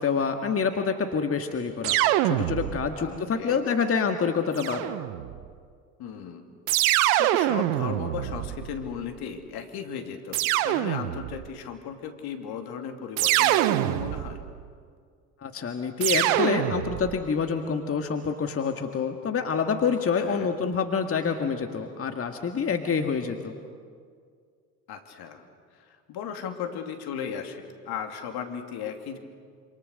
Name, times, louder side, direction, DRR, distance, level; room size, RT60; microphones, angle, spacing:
voice 1, 0.0-4.9 15.4-23.6, left 5 dB, 30° left, 5 dB, 2.0 m, -27 dB
sound 1, 1.8-3.0 4.6-5.4 6.7-9.0 10.3-11.4 13.2-14.5 16.0-17.2, right 14 dB, 70° right, 1.1 m, -25 dB
voice 2, 3.0-3.6 6.0-6.5 6.8-14.4 20.2-20.5 24.9-25.5 25.7-29.2, left 7 dB, 55° left, 5 dB, 3.0 m, -36 dB
27.5 x 27.5 x 6.6 m, 2.1 s
hypercardioid pair, 65°, 44 cm